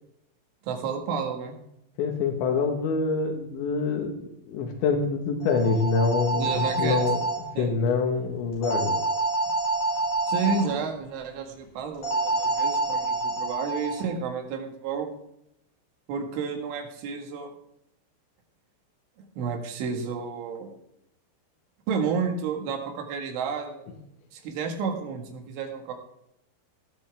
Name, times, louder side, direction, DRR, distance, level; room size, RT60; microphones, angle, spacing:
voice 1, 0.6-1.6 6.3-7.0 7.6-7.7 10.3-15.1 16.1-17.5 19.4-20.8 21.9-23.9 24.3-25.9, right 5 dB, 90° right, 3 dB, 4.3 m, -31 dB
voice 2, 2.0-7.2 7.6-9.0, left 4 dB, 75° left, 2 dB, 3.6 m, -26 dB
sound 1, 5.4-7.4 8.6-10.6 12.0-14.0, right 2 dB, 50° left, 7.0 m, -27 dB
17.5 x 11.5 x 3.5 m, 0.80 s
omnidirectional pair, 5.4 m